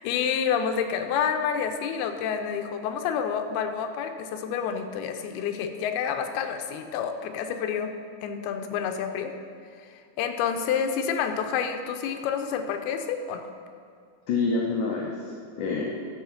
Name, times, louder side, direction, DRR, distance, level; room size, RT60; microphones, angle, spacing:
voice 1, 0.0-7.9 8.2-9.3 10.2-13.5, left 7 dB, 90° left, 6 dB, 2.6 m, -28 dB
voice 2, 14.3-15.9, left 4 dB, 70° left, -1 dB, 2.1 m, -27 dB
12.0 x 4.9 x 7.2 m, 2.3 s
omnidirectional pair, 4.5 m